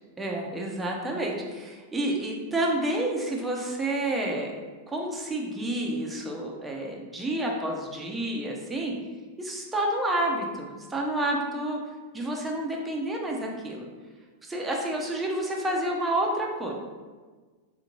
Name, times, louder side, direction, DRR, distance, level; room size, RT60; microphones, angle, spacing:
voice 1, 0.2-4.5 4.9-9.0 9.4-11.8 12.1-13.9 14.4-16.7, right 1 dB, 10° right, -1 dB, 0.5 m, -29 dB
3.4 x 2.6 x 2.9 m, 1.4 s
supercardioid pair, 145°, 0 cm